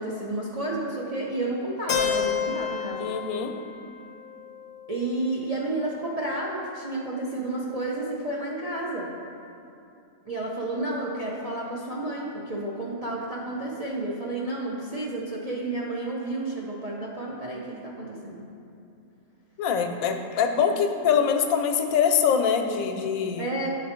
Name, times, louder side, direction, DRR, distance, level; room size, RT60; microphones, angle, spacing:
voice 1, 0.0-3.1 4.9-9.1 10.3-18.4 23.4-23.7, right 2 dB, 50° right, -4 dB, 0.4 m, -31 dB
Keyboard (musical), 1.9-5.8, left 8 dB, 65° left, 0.7 m, -31 dB
voice 2, 3.0-3.5 19.6-23.5, left 7 dB, 90° left, 5 dB, 1.0 m, -24 dB
9.4 x 3.3 x 4.3 m, 2.7 s
omnidirectional pair, 1.4 m